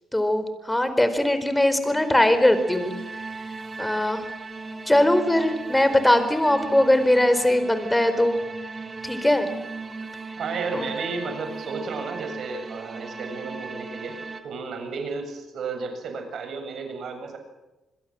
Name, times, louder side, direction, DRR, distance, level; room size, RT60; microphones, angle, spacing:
voice 1, 0.1-2.9 3.8-4.2 4.9-8.4 9.0-9.5 10.7-10.9, left 1 dB, 10° left, 10 dB, 4.4 m, -20 dB
sound 1, 1.9-14.4, right 3 dB, 30° right, 3.4 m, -37 dB
voice 2, 10.4-14.2 14.4-17.4, right 4 dB, 65° right, 6 dB, 7.7 m, -33 dB
28.0 x 21.5 x 7.8 m, 1.0 s
cardioid pair, 90°, 0 cm